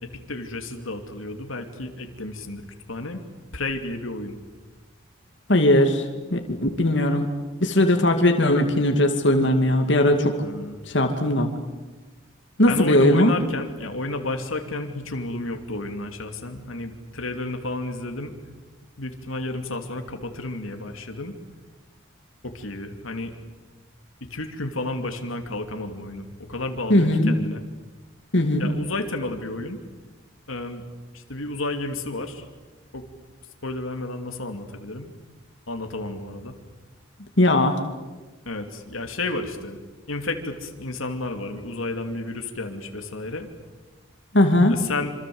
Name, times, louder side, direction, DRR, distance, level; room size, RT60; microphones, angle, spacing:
voice 1, 0.0-3.2 3.5-4.4 10.3-10.8 12.7-18.3 19.0-21.3 22.4-23.3 24.2-27.6 28.6-29.8 30.5-30.8 31.1-32.4 32.9-33.0 33.6-35.1 35.7-36.5 38.4-39.8 40.1-43.5 44.7-45.1, left 2 dB, 90° left, 5 dB, 2.8 m, -31 dB
voice 2, 5.5-6.0 6.3-7.3 7.6-10.4 10.9-11.5 12.6-13.3 26.9-27.3 28.3-28.7 37.4-37.8 44.3-44.7, left 1 dB, 60° left, 4 dB, 2.5 m, -19 dB
27.0 x 26.0 x 7.9 m, 1.2 s
head